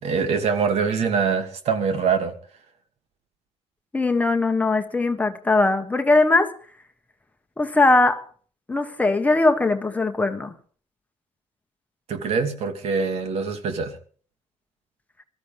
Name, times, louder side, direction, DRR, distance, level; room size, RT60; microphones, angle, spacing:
voice 1, 0.0-2.3 12.1-14.0, right 5 dB, 60° right, 2.6 m, -24 dB
voice 2, 3.9-6.5 7.6-8.2 8.7-10.5, left 2 dB, 10° left, 1.3 m, -20 dB
23.5 x 13.5 x 3.6 m
cardioid pair, 160°, 12 cm